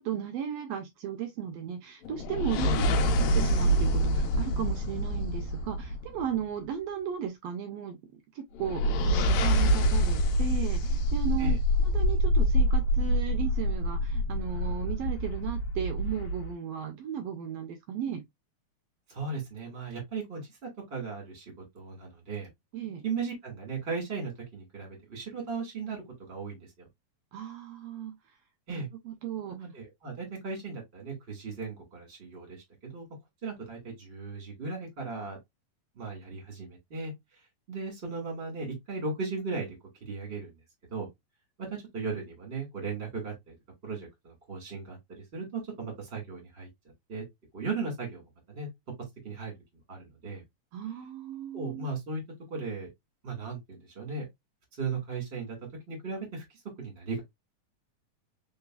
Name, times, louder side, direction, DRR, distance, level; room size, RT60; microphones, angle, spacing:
voice 1, 0.0-2.8 3.2-8.0 8.3-18.2 22.7-23.0 27.3-28.1 28.7-29.6 50.7-51.9, right 9 dB, 80° right, 1.5 m, -35 dB
sound 1, 2.0-6.4 8.5-16.5, equal, 75° left, 1.7 m, -26 dB
voice 2, 19.1-22.5 23.0-26.0 26.3-26.7 28.7-28.9 29.5-33.0 33.4-35.4 36.0-37.1 37.7-39.7 40.0-40.5 40.9-41.1 41.6-43.5 43.8-46.7 47.1-47.2 47.5-48.2 48.5-48.7 49.2-49.5 49.9-50.4 51.5-52.2 52.5-52.9 53.2-54.3 54.8-55.6 55.9-56.4 56.8-57.2, right 4 dB, 25° right, 1.5 m, -36 dB
3.9 x 3.8 x 2.3 m
omnidirectional pair, 3.5 m